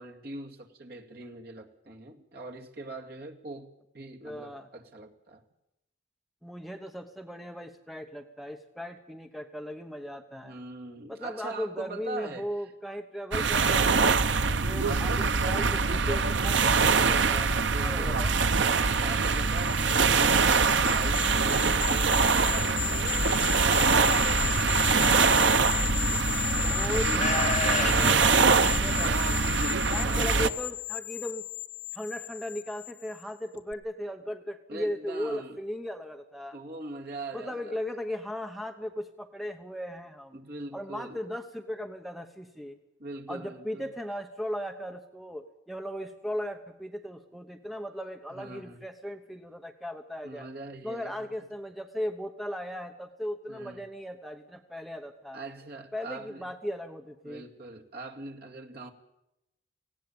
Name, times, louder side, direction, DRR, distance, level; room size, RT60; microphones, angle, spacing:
voice 1, 0.0-3.7 3.9-5.4 10.3-12.5 14.3-15.7 17.7-18.3 18.6-25.6 26.5-27.4 30.0-30.3 34.7-35.6 36.5-37.8 40.3-41.2 43.0-43.9 48.3-48.8 50.2-51.5 53.5-53.8 55.3-56.4 57.2-58.9, right 2 dB, 55° right, 2 dB, 2.4 m, -42 dB
voice 2, 4.2-4.7 6.4-10.6 11.1-14.1 14.6-18.3 26.6-29.4 29.9-31.4 31.9-36.6 37.3-40.4 40.7-42.8 43.3-50.5 50.8-55.4 55.9-57.4, equal, ahead, 6 dB, 1.0 m, -37 dB
sound 1, 13.3-30.5, right 5 dB, 80° right, 0.8 m, -24 dB
sound 2, 18.6-33.2 33.6-33.7, left 18 dB, 65° left, 0.9 m, -34 dB
Livestock farm animals working animals, 24.8-25.4 26.4-26.5 27.1-29.2, left 4 dB, 40° left, 2.5 m, -33 dB
19.0 x 16.5 x 8.7 m, 0.86 s
head